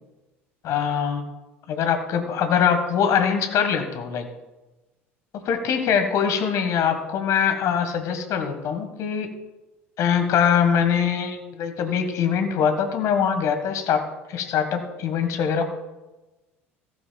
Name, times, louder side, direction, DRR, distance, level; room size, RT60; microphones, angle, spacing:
voice 1, 0.6-1.2 1.7-4.3 5.3-9.3 10.0-15.6, left 7 dB, 50° left, 8 dB, 1.6 m, -23 dB
15.0 x 13.5 x 2.4 m, 1.1 s
figure-of-eight pair, 65°, 7 cm